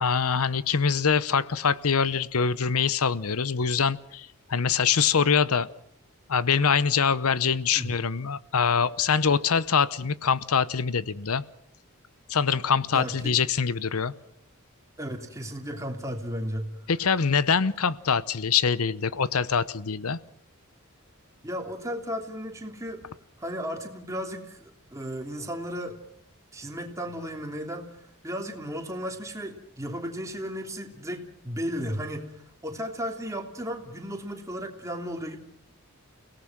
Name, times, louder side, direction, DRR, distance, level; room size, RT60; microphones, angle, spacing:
voice 1, 0.0-5.7 6.3-11.4 12.3-14.1 16.9-20.2, left 6 dB, 85° left, 17 dB, 0.8 m, -24 dB
voice 2, 12.9-13.3 15.0-16.7 21.4-23.0 23.4-26.0 26.5-27.9 28.2-32.3 32.6-35.4, equal, 15° right, 3 dB, 3.1 m, -34 dB
30.0 x 18.0 x 6.0 m, 0.72 s
head